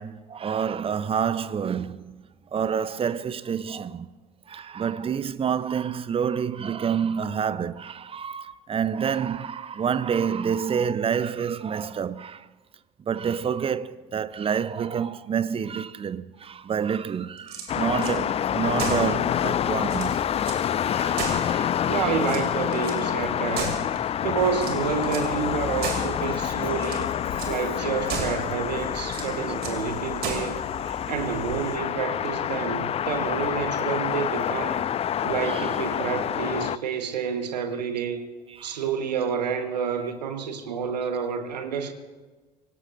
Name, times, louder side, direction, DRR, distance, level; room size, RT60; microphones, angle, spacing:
voice 1, 0.0-2.1 2.5-4.1 4.5-12.5 13.1-20.2 20.9-22.1 23.6-23.7 27.4-27.5 35.5-35.7 38.6-38.7, right 7 dB, 25° right, 0.7 m, -28 dB
sound 1, 17.4-18.2 18.8-19.2 19.6-19.7 19.8-20.7 21.2-21.9 22.2-23.0 23.5-24.1 24.5-25.3 25.8-26.2 26.7-27.1 27.4-27.6 28.1-28.5 29.1-29.8 30.2-30.6, right 5 dB, 50° right, 2.8 m, -34 dB
sound 2, 17.7-36.8, left 9 dB, 30° left, 0.4 m, -27 dB
voice 2, 21.9-23.8 24.2-27.1 27.5-30.6 31.1-34.9 35.2-38.2 38.6-41.9, right 6 dB, 75° right, 1.4 m, -29 dB
sound 3, 24.4-31.8, left 5 dB, 45° left, 2.8 m, -41 dB
25.5 x 18.0 x 2.6 m
figure-of-eight pair, 60°, 21 cm